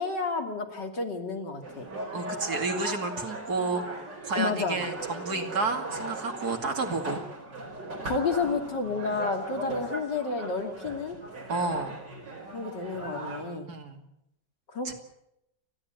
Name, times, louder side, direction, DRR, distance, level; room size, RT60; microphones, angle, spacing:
voice 1, 0.0-1.9 4.3-4.8 8.0-11.2 12.5-13.7 14.7-14.9, left 4 dB, 75° left, 4 dB, 3.4 m, -30 dB
sound 1, 1.6-13.4, right 2 dB, 80° right, 5.1 m, -38 dB
voice 2, 2.1-7.2 11.5-12.0 13.7-14.0 14.8-14.9, right 3 dB, 60° right, 4 dB, 2.9 m, -31 dB
29.5 x 11.5 x 9.0 m, 0.82 s
omnidirectional pair, 1.9 m